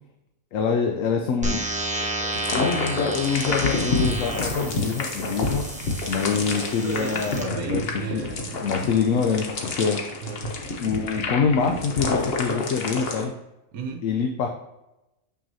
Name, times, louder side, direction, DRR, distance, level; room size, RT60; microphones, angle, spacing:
voice 1, 0.5-1.6 1.9-2.1 2.5-5.6 6.1-8.2 8.6-10.0 10.8-13.3 14.0-14.5, left 6 dB, 70° left, 4 dB, 1.0 m, -25 dB
sound 1, 1.4-7.4, right 1 dB, 5° right, 0.8 m, -31 dB
sound 2, 2.3-13.3, left 3 dB, 50° left, 1.1 m, -29 dB
voice 2, 6.8-8.7 10.2-10.6 13.7-14.0, right 6 dB, 90° right, 4 dB, 1.2 m, -34 dB
7.1 x 6.0 x 2.7 m, 0.94 s
omnidirectional pair, 1.5 m